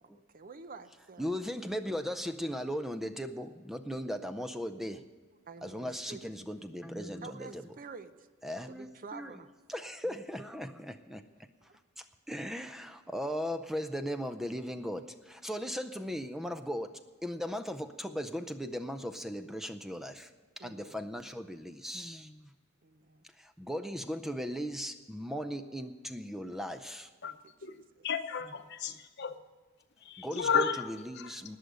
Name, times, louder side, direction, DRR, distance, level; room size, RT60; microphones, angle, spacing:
voice 1, 0.0-1.3 5.5-6.2 6.6-6.7 7.2-8.3 8.7-9.5 11.6-11.8 20.6-21.0 22.8-23.2 27.2-28.1, right 4 dB, 45° right, 11 dB, 0.7 m, -49 dB
voice 2, 1.2-5.0 5.6-7.6 8.4-9.4 9.7-11.2 12.0-16.9 17.2-20.3 20.6-22.5 23.4-27.1 30.2-30.6 31.1-31.6, equal, ahead, 9 dB, 0.5 m, -38 dB
voice 3, 27.6-29.3 30.0-30.9 31.1-31.4, left 6 dB, 55° left, 9 dB, 0.9 m, -33 dB
19.5 x 6.8 x 6.3 m, 1.5 s
head